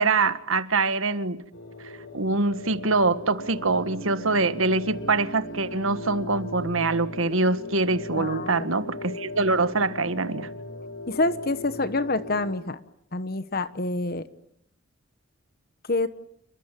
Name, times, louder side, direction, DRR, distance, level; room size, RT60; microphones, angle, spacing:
voice 1, 0.0-1.4 2.1-10.5, right 3 dB, 80° right, 1.7 m, -24 dB
sound 1, 1.5-12.6, left 1 dB, 75° left, 6.5 m, -38 dB
voice 2, 8.1-8.5 11.1-12.8 13.1-14.2 15.9-16.1, left 2 dB, 45° left, 1.2 m, -27 dB
29.5 x 22.0 x 9.1 m
head